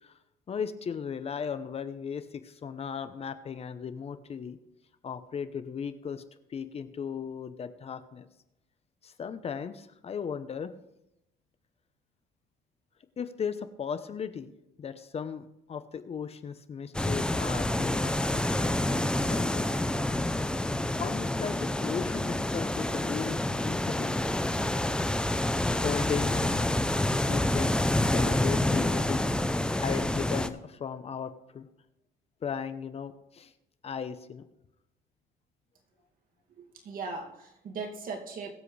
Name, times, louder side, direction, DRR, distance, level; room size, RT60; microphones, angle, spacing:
voice 1, 0.5-4.6 5.0-6.2 6.5-8.3 9.0-10.7 13.2-14.5 14.8-19.7 21.0-24.2 25.7-27.0 27.3-27.7 28.0-31.7 32.4-33.5 33.8-34.4, left 7 dB, 35° left, 11 dB, 0.8 m, -37 dB
sound 1, 16.9-30.5, left 1 dB, 5° left, 0.6 m, -28 dB
voice 2, 36.6-38.5, right 4 dB, 55° right, 1 dB, 2.4 m, -38 dB
22.0 x 7.6 x 3.3 m, 0.86 s
cardioid pair, 110°, 17 cm